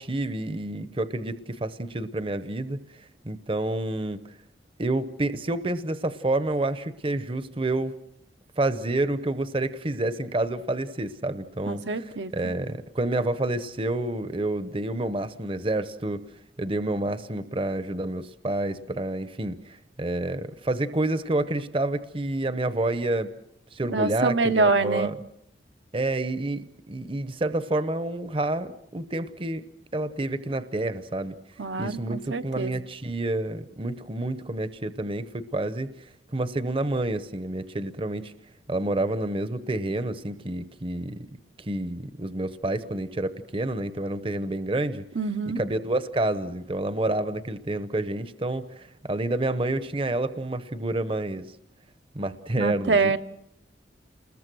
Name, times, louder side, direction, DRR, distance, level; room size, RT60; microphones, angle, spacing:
voice 1, 0.0-2.8 3.2-4.2 4.8-8.0 8.6-16.2 16.6-23.3 23.7-25.1 25.9-29.6 29.9-31.4 31.8-35.9 36.3-38.3 38.7-41.2 41.6-45.0 45.6-51.5 52.1-53.2, right 2 dB, 30° right, 0.8 m, -29 dB
voice 2, 11.7-12.5 23.9-25.1 31.6-32.7 45.1-45.6 52.6-53.2, right 3 dB, 75° right, 0.9 m, -25 dB
28.5 x 21.0 x 6.2 m
head